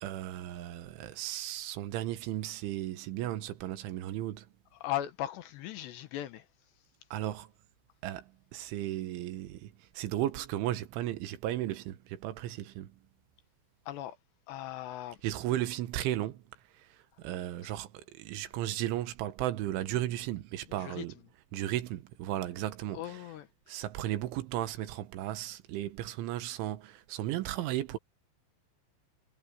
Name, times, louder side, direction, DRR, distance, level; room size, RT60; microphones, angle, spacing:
voice 1, 0.0-4.5 7.1-7.5 8.0-13.0 15.2-16.5 16.7-21.2 21.5-23.3 23.7-28.0, right 13 dB, 85° right, 3.7 m, -35 dB
voice 2, 4.8-6.4 13.9-14.2 14.5-15.2 20.8-21.0 22.9-23.5, left 13 dB, 75° left, 3.2 m, -37 dB
omnidirectional pair, 5.4 m